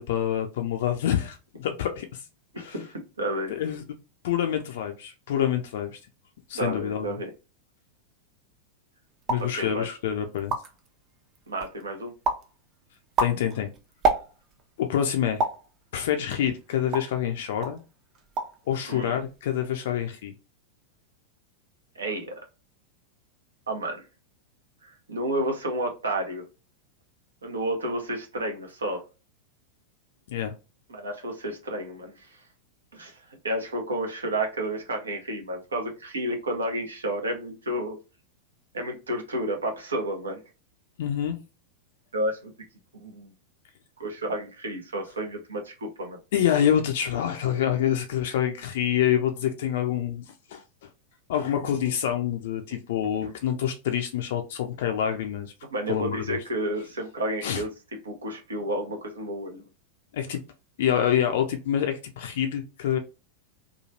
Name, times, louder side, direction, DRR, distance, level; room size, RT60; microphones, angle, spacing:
voice 1, 0.0-2.2 2.6-2.8 3.5-3.8 4.2-6.0 6.5-7.2 9.3-10.5 13.2-13.7 14.8-15.4 15.9-17.8 18.7-20.3 30.3-30.5 41.0-41.4 46.3-50.6 51.3-55.5 55.9-56.4 57.4-57.6 60.1-60.4 60.8-63.0, left 10 dB, 55° left, 0.4 m, -27 dB
voice 2, 2.5-3.5 6.6-7.3 9.5-9.9 11.5-12.1 18.9-19.2 21.9-22.3 23.7-24.0 24.8-26.4 27.4-29.0 30.9-32.4 32.9-33.2 33.4-38.0 38.7-40.4 42.1-42.5 42.9-43.3 44.0-46.2 55.7-57.7 58.0-59.7, right 1 dB, 70° right, 0.8 m, -31 dB
sound 1, 9.2-9.6 10.1-10.2 10.3-10.9 11.4-11.8 12.2-12.5 12.9-14.6 15.4-15.7 16.3-17.2 17.6-17.8 18.1-18.6 18.9-19.4, right 3 dB, 30° right, 0.6 m, -28 dB
3.0 x 2.4 x 2.6 m
figure-of-eight pair, 90°, 0 cm